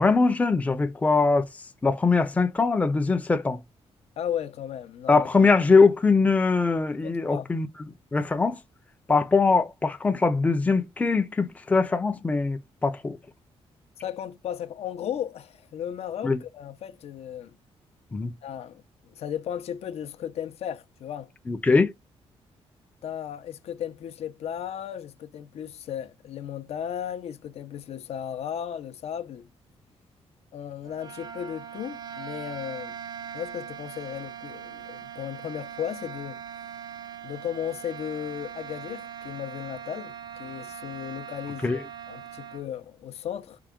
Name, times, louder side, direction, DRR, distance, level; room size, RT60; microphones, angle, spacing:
voice 1, 0.0-1.5 1.8-3.6 5.1-7.7 8.1-8.6 9.1-13.2 16.2-16.4 18.1-18.3 21.5-21.9 41.6-41.8, left 4 dB, 15° left, 0.5 m, -22 dB
voice 2, 4.2-5.3 7.0-7.5 14.0-17.6 18.4-18.8 19.1-21.3 23.0-29.5 30.5-33.0 33.3-36.4 37.2-40.1 40.4-43.6, left 9 dB, 70° left, 0.6 m, -35 dB
sound 1, 30.8-42.7, right 8 dB, 40° right, 0.5 m, -41 dB
4.7 x 2.1 x 3.5 m
cardioid pair, 145°, 11 cm